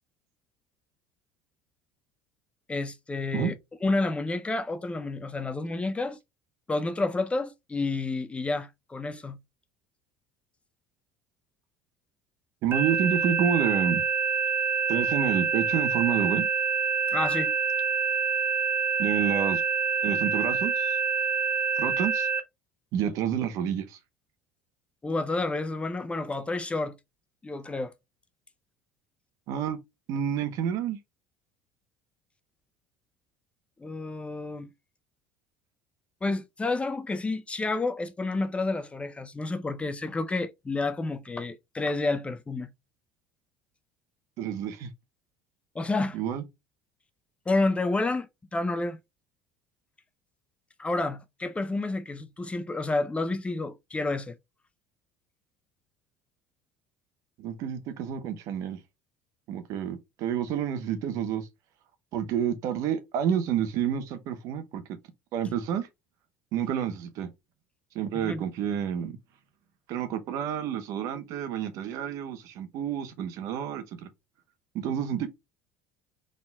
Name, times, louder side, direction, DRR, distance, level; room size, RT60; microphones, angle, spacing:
voice 1, 2.7-3.5 3.8-6.2 6.7-9.4 17.1-17.5 25.0-27.0 27.4-27.9 33.8-34.7 36.2-42.7 45.7-46.2 47.5-49.0 50.8-54.3 68.1-68.4, left 2 dB, 20° left, 0.6 m, -30 dB
voice 2, 12.6-14.0 14.9-16.5 19.0-19.6 20.0-21.0 21.8-22.3 22.9-24.0 29.5-29.8 30.1-31.0 44.4-44.9 46.1-46.4 57.4-58.8 59.5-61.5 62.1-64.8 65.3-65.9 66.5-67.3 67.9-69.2 69.9-74.1 74.7-75.3, right 8 dB, 60° right, 1.0 m, -29 dB
sound 1, 12.7-22.4, right 5 dB, 35° right, 0.8 m, -26 dB
4.0 x 3.8 x 2.3 m
hypercardioid pair, 70°, 6 cm